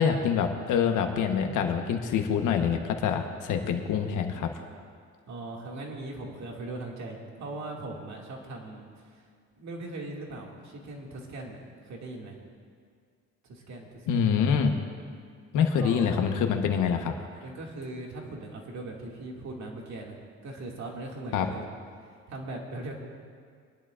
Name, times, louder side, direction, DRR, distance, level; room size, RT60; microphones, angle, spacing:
voice 1, 0.0-4.5 14.1-14.7 15.5-17.1 21.3-21.5, left 7 dB, 85° left, 5 dB, 1.2 m, -25 dB
voice 2, 5.3-9.2 9.5-12.4 13.4-14.3 15.5-16.4 17.4-21.7 22.1-23.0, right 2 dB, 65° right, -1 dB, 2.3 m, -40 dB
22.5 x 11.0 x 2.5 m, 2.1 s
cardioid pair, 90°, 30 cm